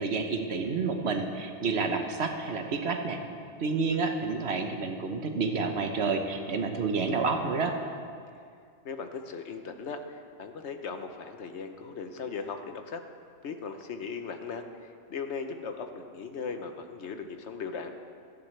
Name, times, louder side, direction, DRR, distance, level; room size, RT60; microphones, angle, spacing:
voice 1, 0.0-3.2 3.6-7.7, right 4 dB, 65° right, 5 dB, 1.3 m, -29 dB
voice 2, 8.8-13.0 13.4-14.6 15.1-17.9, left 5 dB, 80° left, 6 dB, 1.2 m, -38 dB
16.0 x 13.5 x 3.3 m, 2.2 s
omnidirectional pair, 1.2 m